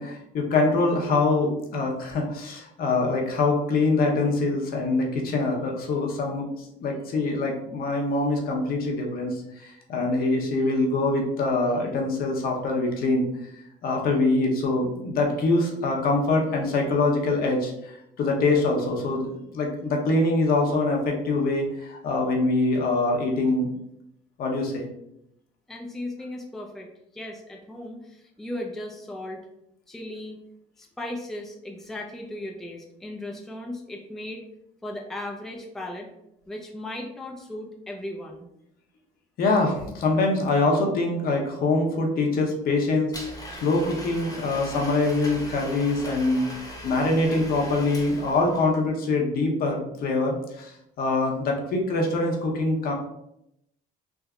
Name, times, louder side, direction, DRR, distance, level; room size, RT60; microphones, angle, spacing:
voice 1, 0.0-13.2 13.8-19.3 19.5-23.7 24.4-24.9 39.4-43.1 43.5-46.5 46.8-52.9, left 2 dB, 60° left, 0 dB, 0.8 m, -24 dB
voice 2, 25.7-26.9 27.1-29.4 29.9-30.4 30.8-34.4 34.8-36.1 36.5-38.5, left 1 dB, ahead, 0 dB, 0.4 m, -36 dB
Domestic sounds home sounds, 43.1-48.8, equal, 20° left, 0.9 m, -39 dB
3.5 x 2.6 x 2.3 m, 0.79 s
cardioid pair, 110°, 17 cm